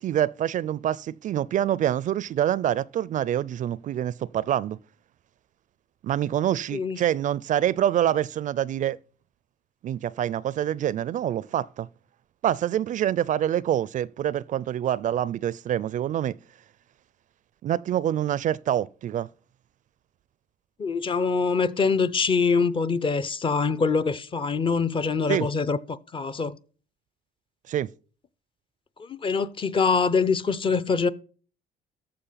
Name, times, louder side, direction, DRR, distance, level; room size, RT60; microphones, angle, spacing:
voice 1, 0.0-4.8 6.0-9.0 9.8-11.9 12.4-16.3 17.6-19.3 25.3-25.5 27.7-27.9, right 11 dB, 50° right, 0.4 m, -26 dB
voice 2, 20.8-26.6 29.0-31.1, left 5 dB, 30° left, 0.6 m, -24 dB
14.0 x 5.1 x 5.7 m
cardioid pair, 110°, 17 cm